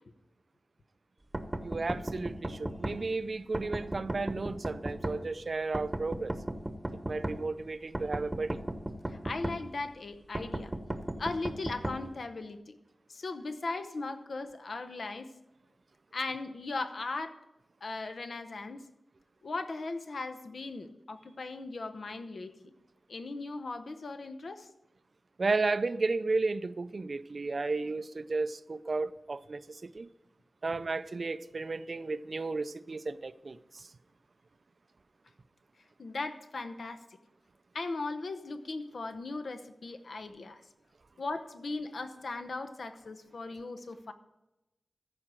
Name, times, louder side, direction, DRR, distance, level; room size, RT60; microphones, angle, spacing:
sound 1, 1.3-3.0 3.5-5.2 5.7-7.4 7.9-9.6 10.3-12.0, right 1 dB, 20° right, 1.0 m, -35 dB
voice 1, 1.6-6.3 7.1-8.6 25.4-30.1 30.6-33.9, right 3 dB, 55° right, 0.4 m, -33 dB
voice 2, 9.1-10.7 11.2-12.8 13.1-15.3 16.1-17.4 17.8-18.8 19.4-22.7 23.1-24.7 36.0-37.0 37.7-40.6 41.2-44.1, left 3 dB, 70° left, 0.8 m, -38 dB
14.5 x 4.9 x 7.5 m
wide cardioid pair, 90°, 0 cm